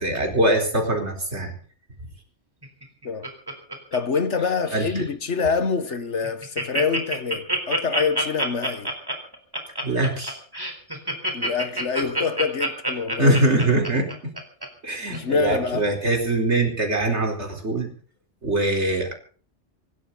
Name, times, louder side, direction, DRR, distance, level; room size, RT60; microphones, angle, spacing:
voice 1, 0.0-1.5 4.7-5.0 9.8-10.4 13.2-14.1 14.8-17.9 18.4-19.1, right 2 dB, 75° right, 4.7 m, -22 dB
Laughter, 2.6-4.4 4.7-5.0 5.5-5.6 5.9-6.0 6.2-14.7 15.1-15.2, right 1 dB, 20° right, 4.1 m, -27 dB
voice 2, 3.9-8.9 11.3-13.4 15.1-15.9, left 5 dB, 80° left, 1.8 m, -25 dB
25.0 x 13.0 x 4.1 m
omnidirectional pair, 1.2 m